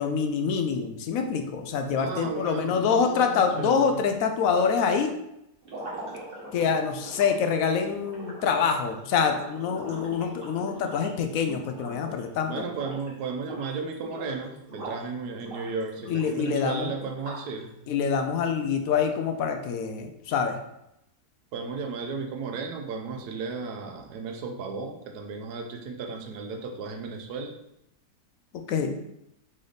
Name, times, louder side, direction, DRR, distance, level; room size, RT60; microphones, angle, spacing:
voice 1, 0.0-5.1 6.5-12.6 16.1-16.9 17.9-20.6 28.5-29.0, left 6 dB, 70° left, 6 dB, 0.9 m, -26 dB
voice 2, 2.0-4.0 12.5-17.7 21.5-27.5, right 4 dB, 75° right, 4 dB, 1.2 m, -34 dB
sound 1, 5.6-12.3 12.6-13.1 13.4-15.1 15.4-17.6, right 1 dB, 35° right, 1.3 m, -42 dB
4.0 x 3.4 x 3.9 m, 0.83 s
omnidirectional pair, 1.7 m